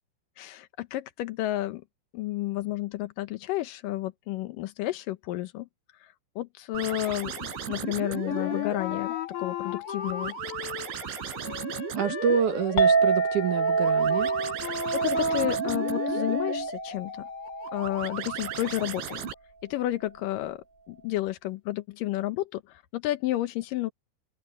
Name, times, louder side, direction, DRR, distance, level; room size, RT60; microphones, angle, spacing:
voice 1, 0.4-1.8 2.1-5.7 6.0-10.4 14.6-17.3 17.7-19.2 19.6-20.6 20.9-23.9, left 15 dB, 80° left, 1.9 m, -31 dB
sound 1, 6.7-19.3, right 5 dB, 90° right, 6.0 m, -37 dB
Wind instrument woodwind instrument, 8.2-16.7, left 12 dB, 60° left, 2.3 m, -36 dB
voice 2, 12.0-14.3, right 7 dB, 60° right, 2.4 m, -27 dB
Chink clink, 12.8-19.1, right 5 dB, 30° left, 2.4 m, -27 dB
open air
omnidirectional pair, 5.2 m